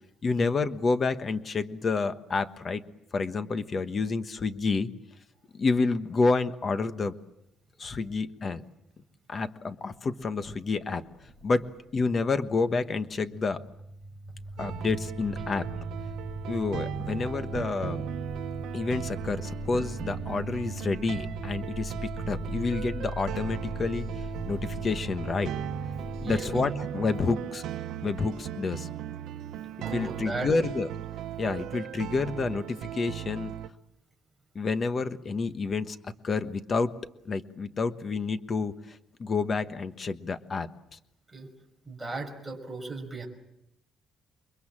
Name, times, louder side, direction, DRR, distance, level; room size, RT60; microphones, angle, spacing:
voice 1, 0.2-2.8 3.1-4.9 5.5-7.1 7.8-8.6 9.3-11.0 11.4-11.7 11.9-13.6 14.6-15.7 16.5-18.0 18.7-25.5 26.2-27.6 28.0-28.9 29.9-30.9 31.4-33.5 34.5-36.0 36.2-36.9 37.2-41.0, left 4 dB, 30° left, 10 dB, 1.2 m, -29 dB
sound 1, 11.1-12.3 12.6-26.4, right 1 dB, 15° left, 6.3 m, -39 dB
sound 2, 14.6-33.7, right 11 dB, 85° right, 1.0 m, -38 dB
voice 2, 26.2-26.5 29.8-30.5 41.3-41.5 41.9-43.3, right 3 dB, 5° right, 0 dB, 5.7 m, -36 dB
29.0 x 23.0 x 7.5 m, 0.82 s
cardioid pair, 175°, 0 cm